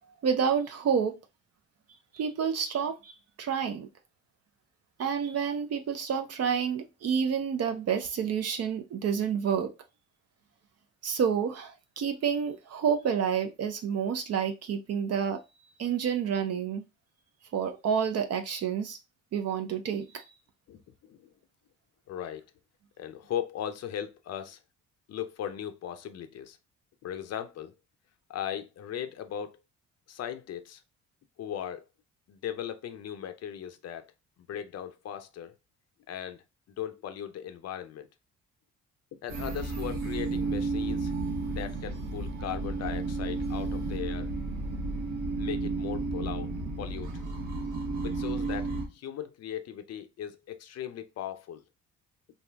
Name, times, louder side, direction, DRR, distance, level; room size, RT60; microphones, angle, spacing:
voice 1, 0.2-1.1 2.1-3.1 3.4-3.9 5.0-9.7 11.0-15.4 15.8-16.8 17.5-19.0 19.3-20.0, right 7 dB, 55° right, 0.5 m, -29 dB
voice 2, 20.7-21.3 22.1-22.4 23.0-24.6 25.1-26.6 27.0-27.7 28.3-29.6 30.1-30.8 31.4-31.9 32.3-34.1 34.5-35.6 36.1-36.4 36.8-38.1 39.2-41.1 41.5-44.3 45.4-46.5 46.8-47.1 48.0-51.6, left 10 dB, 55° left, 0.5 m, -38 dB
sound 1, 39.3-48.9, right 3 dB, 85° right, 1.0 m, -32 dB
2.6 x 2.3 x 3.2 m
cardioid pair, 90°, 30 cm